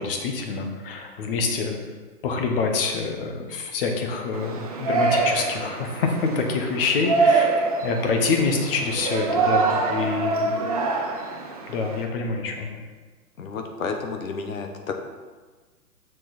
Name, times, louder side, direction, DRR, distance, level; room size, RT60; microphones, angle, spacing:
voice 1, 0.0-1.8 2.2-10.6 11.7-12.8, left 4 dB, 35° left, 3 dB, 1.1 m, -26 dB
Yell, 4.3-12.0, right 3 dB, 25° right, 0.5 m, -25 dB
voice 2, 13.4-14.9, left 4 dB, 55° left, 4 dB, 1.2 m, -31 dB
6.6 x 6.3 x 4.2 m, 1.3 s
figure-of-eight pair, 125°, 49 cm